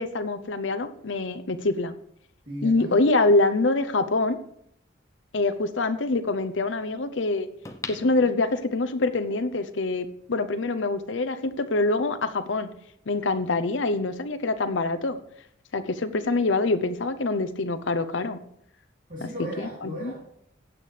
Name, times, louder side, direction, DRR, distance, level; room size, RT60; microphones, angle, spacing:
voice 1, 0.0-1.9 2.6-4.4 5.3-7.5 7.9-12.7 13.1-15.2 15.7-18.4 20.0-20.1, left 3 dB, 75° left, 11 dB, 0.7 m, -25 dB
voice 2, 2.4-3.0 3.9-4.1 19.1-20.2, equal, 40° right, -6 dB, 2.9 m, -36 dB
sound 1, 7.6-9.0 9.5-9.6, left 3 dB, 15° left, 0.7 m, -40 dB
15.0 x 8.7 x 3.3 m, 0.72 s
head